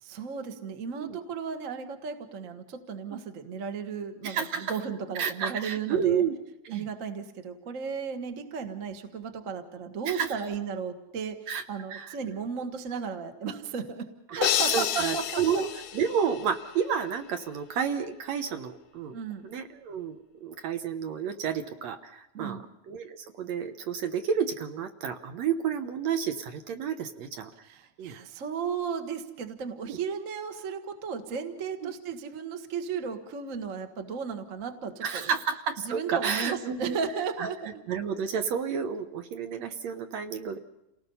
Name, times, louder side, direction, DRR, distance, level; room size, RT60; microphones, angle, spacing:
voice 1, 0.0-6.2 6.7-15.4 19.1-19.5 22.3-22.6 27.7-35.3 35.8-37.8, right 6 dB, 40° right, 6 dB, 1.1 m, -35 dB
voice 2, 4.2-4.7 5.2-6.4 6.7-6.9 10.0-10.3 11.5-11.6 11.9-12.2 14.3-14.4 14.7-15.7 15.9-19.1 19.4-27.5 28.0-28.2 29.9-30.0 31.8-31.9 35.0-37.0 37.4-37.5 37.9-40.6, right 7 dB, 65° right, 7 dB, 2.0 m, -31 dB
sound 1, 14.4-16.7, left 10 dB, 90° left, 2.7 m, -29 dB
28.5 x 18.5 x 5.5 m, 0.89 s
omnidirectional pair, 3.6 m